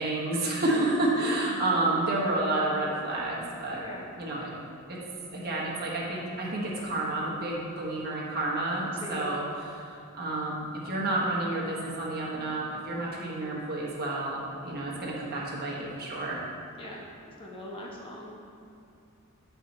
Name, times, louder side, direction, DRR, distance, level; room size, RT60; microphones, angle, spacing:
voice 1, 0.0-3.8 4.2-4.5 4.9-5.0 5.3-9.9 10.1-16.4, right 2 dB, 45° right, -4 dB, 1.5 m, -30 dB
voice 2, 3.6-4.1 9.0-9.4 16.8-18.4, left 1 dB, 25° left, -3 dB, 1.1 m, -42 dB
9.8 x 4.6 x 4.2 m, 2.7 s
head